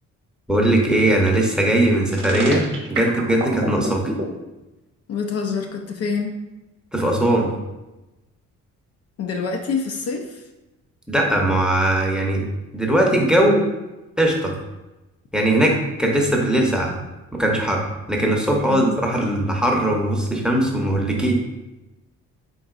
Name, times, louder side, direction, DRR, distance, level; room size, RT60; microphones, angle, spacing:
voice 1, 0.5-4.0 6.9-7.5 11.1-12.4 12.7-13.6 14.2-14.5 15.3-16.9 17.3-21.3, right 1 dB, 5° right, 0 dB, 0.7 m, -19 dB
sound 1, 2.1-4.2, right 2 dB, 40° right, 0.9 m, -26 dB
voice 2, 5.1-6.4 9.2-10.5 18.7-19.0, left 5 dB, 55° left, 4 dB, 0.5 m, -26 dB
3.9 x 3.8 x 2.4 m, 1.0 s
cardioid pair, 90°, 30 cm